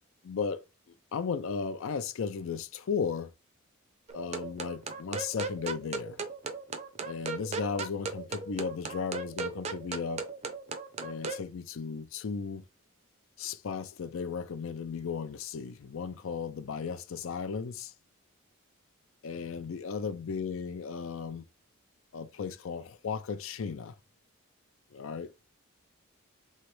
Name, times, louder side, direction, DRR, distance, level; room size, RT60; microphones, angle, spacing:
voice 1, 0.2-0.6 1.1-3.3 4.1-6.2 7.0-10.3 11.0-12.6 13.4-17.9 19.2-21.4 22.1-24.0 24.9-25.3, left 5 dB, 70° left, 0.4 m, -35 dB
sound 1, 4.1-11.4, right 4 dB, 30° right, 0.5 m, -37 dB
3.8 x 3.2 x 3.1 m
head